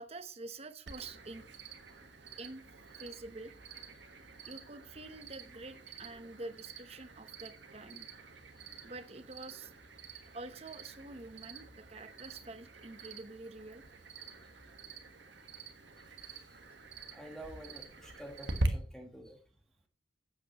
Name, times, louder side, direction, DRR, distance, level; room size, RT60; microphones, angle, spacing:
voice 1, 0.0-1.5 2.4-2.6 3.0-3.5 4.4-8.1 8.8-9.7 10.1-13.8, right 2 dB, 35° right, 11 dB, 0.8 m, -47 dB
Cricket, 0.9-18.7, right 2 dB, 80° right, 1.4 m, -45 dB
voice 2, 8.6-8.9 10.2-10.3 14.4-14.5 16.0-16.1 16.5-16.6 17.0-19.4, right 1 dB, 5° left, 3 dB, 1.2 m, -50 dB
12.0 x 8.3 x 3.0 m, 0.41 s
head